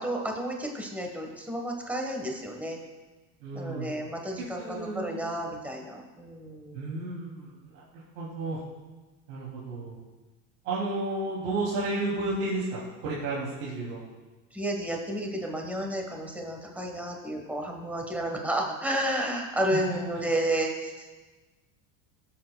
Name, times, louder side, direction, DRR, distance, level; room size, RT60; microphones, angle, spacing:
voice 1, 0.0-2.8 3.5-6.9 14.5-21.1, right 1 dB, 5° right, 1 dB, 1.2 m, -31 dB
voice 2, 3.4-4.0 4.6-5.2 6.7-8.6 9.3-9.9 10.6-14.0 19.7-19.8, right 2 dB, 80° right, -7 dB, 2.8 m, -32 dB
18.0 x 7.7 x 2.3 m, 1.2 s
supercardioid pair, 140°, 43 cm